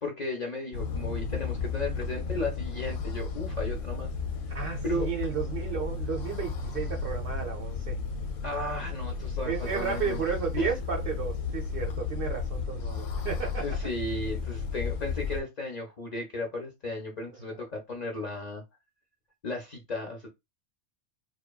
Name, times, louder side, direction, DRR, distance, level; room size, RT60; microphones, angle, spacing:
voice 1, 0.0-4.1 4.8-5.1 8.4-10.2 10.6-10.7 13.6-18.6 19.4-20.3, left 1 dB, 50° left, 0.5 m, -35 dB
sound 1, 0.7-15.4, left 5 dB, 90° left, 0.9 m, -33 dB
voice 2, 4.5-8.0 9.4-13.7, right 6 dB, 60° right, 0.7 m, -33 dB
2.9 x 2.1 x 2.2 m
omnidirectional pair, 1.3 m